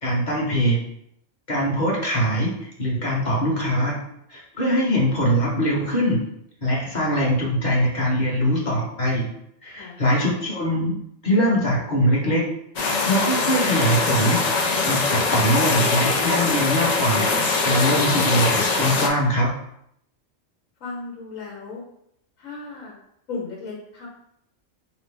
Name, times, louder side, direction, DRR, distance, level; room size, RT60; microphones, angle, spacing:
voice 1, 0.0-0.8 1.5-2.5 2.8-4.0 4.3-6.2 6.6-9.3 9.6-11.0 11.2-12.5 12.8-19.5, equal, 35° left, -3 dB, 1.1 m, -22 dB
sound 1, 12.8-19.1, left 3 dB, 60° left, 0.4 m, -22 dB
voice 2, 20.8-21.8 22.4-22.9 23.3-24.1, left 4 dB, 85° left, -3 dB, 1.3 m, -35 dB
3.8 x 2.8 x 3.7 m, 0.73 s
omnidirectional pair, 1.4 m